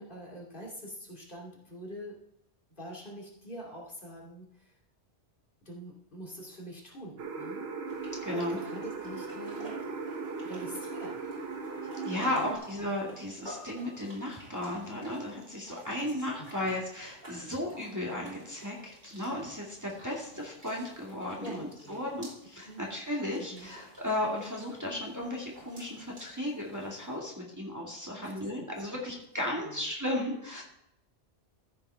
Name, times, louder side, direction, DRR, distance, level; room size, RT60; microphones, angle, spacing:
voice 1, 0.0-2.2 2.8-4.8 5.6-7.6 8.3-9.9 10.4-11.1 12.3-12.5 16.0-16.5 21.4-22.0 22.6-22.8 23.3-23.7 28.2-28.5 28.9-29.0 29.6-29.9, equal, 45° left, -3 dB, 2.6 m, -44 dB
sound 1, 7.2-12.6, right 4 dB, 65° right, 1.3 m, -38 dB
sound 2, 7.9-27.2, equal, 40° right, 3.8 m, -52 dB
voice 2, 8.2-8.6 12.0-30.6, left 1 dB, 15° right, -3 dB, 2.0 m, -35 dB
14.0 x 7.1 x 3.5 m, 0.79 s
omnidirectional pair, 1.2 m